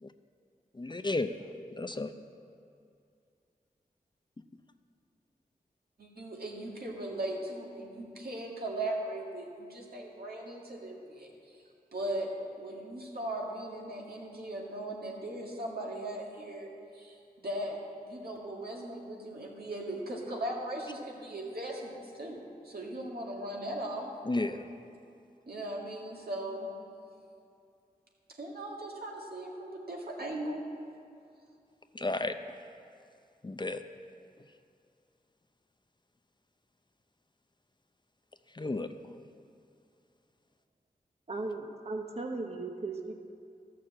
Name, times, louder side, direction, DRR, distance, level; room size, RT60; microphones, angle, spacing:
voice 1, 0.8-1.3 1.8-2.1 24.3-24.7 31.9-32.3 33.4-33.8 38.5-38.9, left 2 dB, 30° left, 8 dB, 0.6 m, -32 dB
voice 2, 6.0-11.3 11.9-12.3 12.6-17.8 18.0-24.1 25.5-26.7 28.4-30.6, right 1 dB, 75° right, -2 dB, 2.0 m, -38 dB
voice 3, 41.3-43.1, right 3 dB, 40° right, 4 dB, 1.0 m, -37 dB
12.5 x 6.7 x 7.6 m, 2.4 s
cardioid pair, 50°, 16 cm